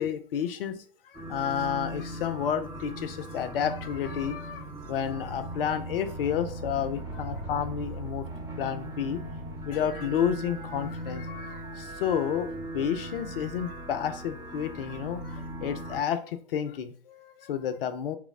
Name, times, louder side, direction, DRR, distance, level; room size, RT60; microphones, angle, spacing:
voice 1, 0.0-8.3 8.6-9.2 9.6-18.2, left 9 dB, 70° left, 10 dB, 0.5 m, -31 dB
sound 1, 1.1-16.0, right 1 dB, 10° right, 0.7 m, -38 dB
3.0 x 2.0 x 3.6 m, 0.43 s
figure-of-eight pair, 90°, 30 cm